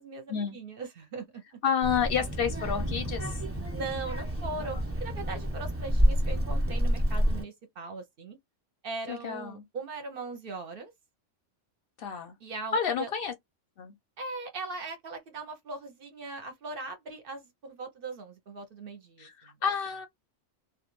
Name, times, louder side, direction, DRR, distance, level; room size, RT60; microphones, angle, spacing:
voice 1, 0.0-1.4 3.7-8.4 8.8-10.9 12.4-13.1 14.2-19.5, right 3 dB, 60° right, 0.7 m, -39 dB
voice 2, 1.6-3.4 4.6-4.7 9.1-9.6 12.0-12.4 12.7-13.3 13.8-13.9 19.2-20.1, left 7 dB, 60° left, 0.6 m, -30 dB
Child speech kid speaking, 1.8-7.4, equal, 15° right, 0.7 m, -28 dB
2.3 x 2.1 x 2.9 m
omnidirectional pair, 1.2 m